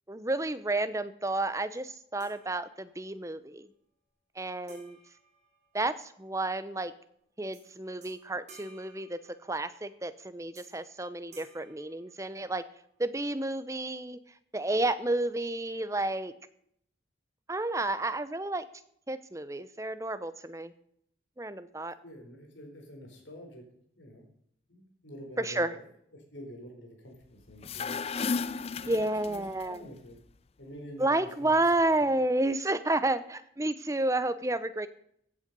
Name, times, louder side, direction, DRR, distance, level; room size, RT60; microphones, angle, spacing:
voice 1, 0.1-3.7 4.4-5.0 5.7-6.9 7.4-9.2 9.5-12.6 13.0-14.2 14.5-16.3 17.5-18.7 19.1-20.7 21.4-21.9 25.4-25.7 28.9-29.8 31.0-34.9, right 2 dB, 15° right, 13 dB, 0.7 m, -31 dB
sound 1, 2.2-3.2 4.7-6.2 7.5-7.7 8.0-9.8 10.5-10.9 11.3-12.7, right 3 dB, 35° right, 4.5 m, -57 dB
voice 2, 22.0-23.6 23.9-24.3 24.7-28.0 28.8-30.2 30.6-31.7 32.0-32.1, equal, 70° left, 2 dB, 4.3 m, -47 dB
sound 2, 27.5-29.6, left 5 dB, 30° left, 0.4 m, -34 dB
15.5 x 8.5 x 5.3 m, 0.69 s
head